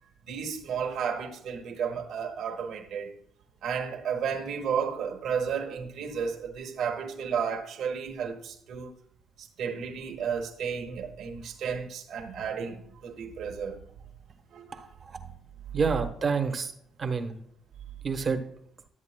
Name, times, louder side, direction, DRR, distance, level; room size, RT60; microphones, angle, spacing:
voice 1, 0.3-3.1 3.6-8.9 9.4-13.8 14.5-14.8 15.2-15.3, right 7 dB, 75° right, 1.3 m, -33 dB
voice 2, 14.7-15.2 15.7-16.7 17.0-17.4 18.0-18.4, right 5 dB, 40° right, 1.0 m, -28 dB
12.5 x 8.2 x 2.2 m
cardioid pair, 90°, 0 cm